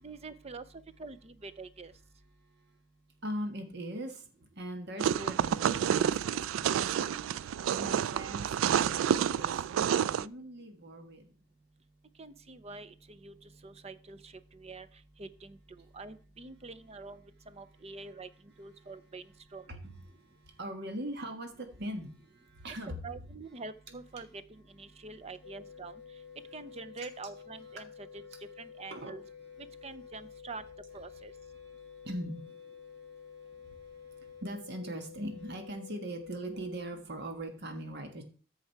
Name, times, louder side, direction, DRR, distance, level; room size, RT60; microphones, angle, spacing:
voice 1, 0.0-0.6 1.0-1.9 12.2-14.9 15.2-18.3 18.6-19.8 23.0-26.0 26.5-28.2 28.6-29.2 29.8-30.6 30.9-31.3, right 3 dB, 35° right, 13 dB, 0.6 m, -46 dB
voice 2, 3.2-4.3 4.6-6.9 7.4-11.3 19.7-22.9 28.9-29.1 31.6-38.2, right 1 dB, 60° right, 5 dB, 1.4 m, -41 dB
sound 1, 5.0-10.3, right 8 dB, 85° right, 0.3 m, -29 dB
sound 2, 25.4-36.9, left 7 dB, 85° left, 0.5 m, -50 dB
13.5 x 4.8 x 4.6 m, 0.40 s
head